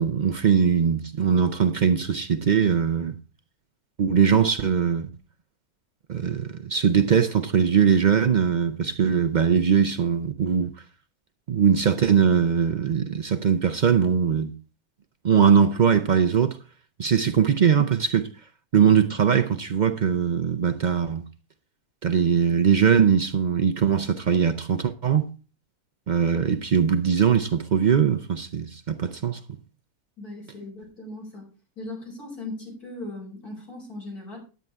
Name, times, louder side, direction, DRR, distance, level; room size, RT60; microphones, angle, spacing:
voice 1, 0.0-3.2 4.0-5.1 6.1-10.7 11.5-14.5 15.2-16.6 17.0-18.3 18.7-21.2 22.0-25.3 26.1-29.4, right 7 dB, 60° right, 0.4 m, -21 dB
voice 2, 30.2-31.5 31.8-34.4, left 2 dB, 80° left, 5.4 m, -38 dB
10.5 x 9.2 x 3.5 m
omnidirectional pair, 1.6 m